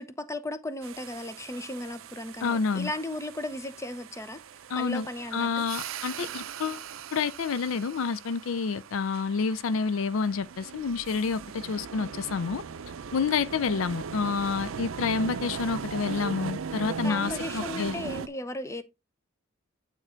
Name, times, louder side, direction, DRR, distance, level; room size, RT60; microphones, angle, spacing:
voice 1, 0.0-4.4 4.8-5.6 17.0-18.8, left 1 dB, 15° left, 0.7 m, -36 dB
sound 1, 0.8-18.3, right 6 dB, 70° right, 0.5 m, -39 dB
voice 2, 2.4-2.9 4.7-6.8 7.1-12.6 13.1-18.0, left 5 dB, 75° left, 0.4 m, -29 dB
8.9 x 3.7 x 4.4 m
head